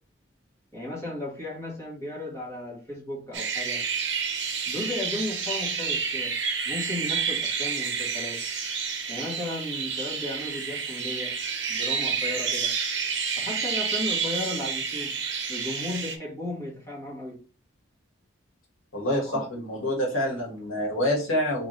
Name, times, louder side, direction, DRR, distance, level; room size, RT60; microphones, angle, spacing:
voice 1, 0.7-3.8 4.6-6.3 6.6-8.4 9.1-11.3 11.7-12.7 13.4-15.1 15.5-17.4 19.2-19.4, left 1 dB, 15° left, -5 dB, 1.7 m, -35 dB
sound 1, 3.3-16.2, right 6 dB, 65° right, 0.9 m, -29 dB
voice 2, 18.9-21.7, left 1 dB, 90° left, -2 dB, 1.9 m, -27 dB
3.7 x 3.6 x 3.2 m, 0.38 s
head